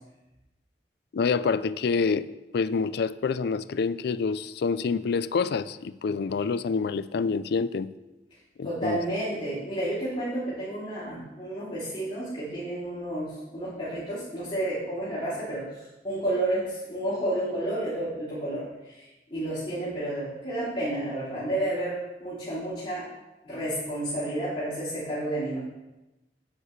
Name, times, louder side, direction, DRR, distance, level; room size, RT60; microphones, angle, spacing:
voice 1, 1.1-2.3 2.5-7.9 8.6-9.0, left 5 dB, 65° left, 0.4 m, -27 dB
voice 2, 8.6-19.0 19.3-23.1 23.4-25.6, right 1 dB, 30° left, 2.9 m, -31 dB
9.9 x 8.7 x 3.2 m
head